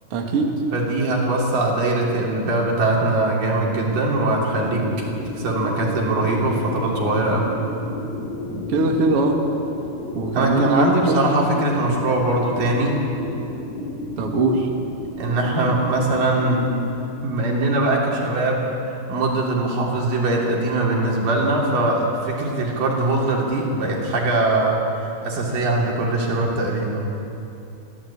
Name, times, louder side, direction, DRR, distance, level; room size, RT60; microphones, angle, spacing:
voice 1, 0.1-0.6 8.5-9.4 10.1-11.3 14.2-14.7, right 2 dB, 50° right, 1 dB, 2.5 m, -21 dB
voice 2, 0.7-4.9 5.4-7.6 10.3-13.0 15.2-16.7 17.2-27.1, right 2 dB, 85° right, -2 dB, 4.9 m, -21 dB
sound 1, 4.6-17.1, left 1 dB, 60° left, 6.5 m, -33 dB
23.0 x 15.5 x 8.7 m, 2.8 s
omnidirectional pair, 3.8 m